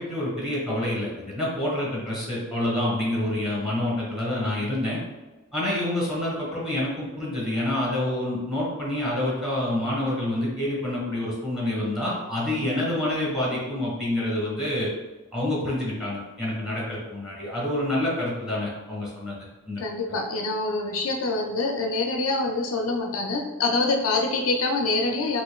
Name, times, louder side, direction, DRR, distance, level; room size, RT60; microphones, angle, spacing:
voice 1, 0.0-5.0 5.5-14.9 15.3-19.4 19.7-19.8, left 1 dB, ahead, -5 dB, 1.4 m, -27 dB
voice 2, 19.8-25.4, left 3 dB, 65° left, 2 dB, 0.4 m, -25 dB
5.0 x 2.4 x 2.3 m, 1.2 s
head